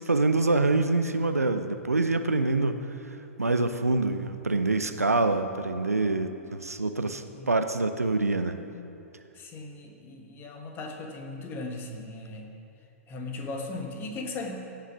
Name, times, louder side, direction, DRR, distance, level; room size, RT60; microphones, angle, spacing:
voice 1, 0.0-2.8 3.4-8.6, right 2 dB, 85° right, 9 dB, 0.6 m, -25 dB
voice 2, 9.3-12.5 13.1-14.6, left 2 dB, 25° left, 3 dB, 1.4 m, -37 dB
16.0 x 5.8 x 6.0 m, 2.8 s
figure-of-eight pair, 110°, 8 cm